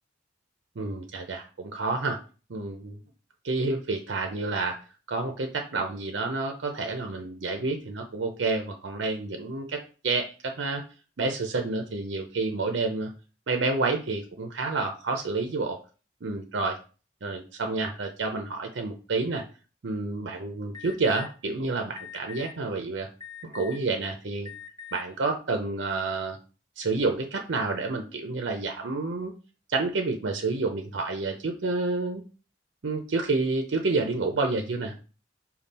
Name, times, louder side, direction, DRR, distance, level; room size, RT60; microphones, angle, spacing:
voice 1, 0.8-2.2 2.5-3.0 3.4-4.8 5.1-9.8 10.0-10.8 11.2-13.1 13.5-15.8 16.2-16.8 17.2-19.4 19.8-23.1 23.4-24.5 24.9-26.4 26.8-29.3 29.7-32.2 32.8-34.9, right 3 dB, 85° right, 4 dB, 0.6 m, -29 dB
Alarm, 20.7-21.3 22.0-22.5 23.2-23.9 24.4-25.0, left 8 dB, 20° left, 0.7 m, -42 dB
5.3 x 2.3 x 4.1 m, 0.35 s
head